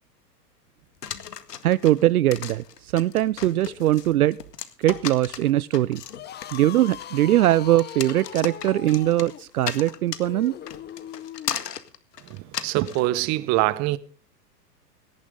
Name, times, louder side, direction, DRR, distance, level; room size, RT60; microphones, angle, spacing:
sound 1, 1.0-13.1, left 9 dB, 70° left, 2.0 m, -36 dB
voice 1, 1.6-4.4 4.8-6.0 6.5-10.5, right 14 dB, 65° right, 0.7 m, -21 dB
sound 2, 6.1-11.7, left 10 dB, 20° left, 1.2 m, -40 dB
voice 2, 12.3-14.0, right 17 dB, 35° right, 1.1 m, -24 dB
18.5 x 13.5 x 3.8 m
figure-of-eight pair, 105°, 49 cm